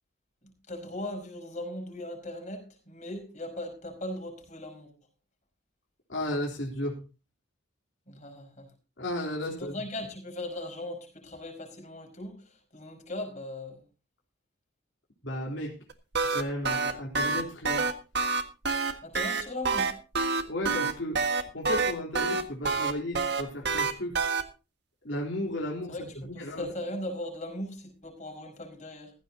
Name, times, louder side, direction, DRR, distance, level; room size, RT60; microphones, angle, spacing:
voice 1, 0.7-4.9 8.1-8.7 9.4-13.8 19.0-19.9 25.9-26.0 26.3-29.1, left 1 dB, 40° left, 3 dB, 5.2 m, -38 dB
voice 2, 6.1-7.0 9.0-9.8 15.2-15.7 16.3-17.8 20.5-21.2 21.5-24.2 25.0-26.0 26.2-26.7, left 1 dB, 70° left, -2 dB, 3.6 m, -34 dB
sound 1, 15.9-24.4, right 4 dB, 55° right, 1.7 m, -27 dB
16.0 x 15.0 x 2.8 m, 0.32 s
head